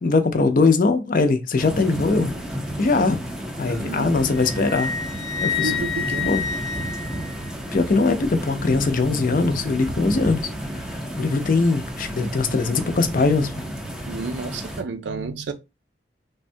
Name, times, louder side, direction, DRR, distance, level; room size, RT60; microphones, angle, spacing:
voice 1, 0.0-2.3 2.8-3.2 3.6-4.9 5.4-5.7 6.3-6.4 7.7-13.5, left 3 dB, 50° left, 0.5 m, -21 dB
sound 1, 1.6-14.8, equal, 5° right, 0.5 m, -31 dB
voice 2, 3.7-4.3 5.6-6.4 14.1-15.5, right 3 dB, 85° right, 0.5 m, -31 dB
Wind instrument woodwind instrument, 4.3-7.8, left 6 dB, 70° left, 0.8 m, -29 dB
3.5 x 2.2 x 2.6 m
head